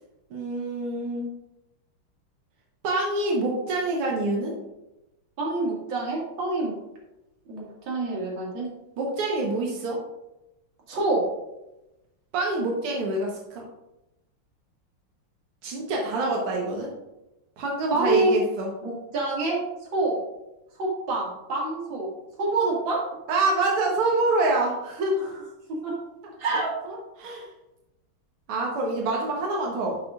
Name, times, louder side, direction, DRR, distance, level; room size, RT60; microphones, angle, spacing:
voice 1, 0.3-1.3 2.8-4.6 9.0-10.0 12.3-13.7 15.6-16.9 17.6-18.7 23.3-25.3 26.8-27.5 28.5-30.0, right 2 dB, 90° right, -1 dB, 2.1 m, -26 dB
voice 2, 5.4-6.7 7.5-8.7 10.9-11.2 17.9-18.4 18.8-19.6 19.9-20.2 20.8-22.1 22.4-23.0 25.2-25.3 25.7-25.9 26.4-26.7, right 2 dB, 60° right, -3 dB, 2.8 m, -26 dB
10.5 x 6.7 x 2.5 m, 0.94 s
omnidirectional pair, 2.4 m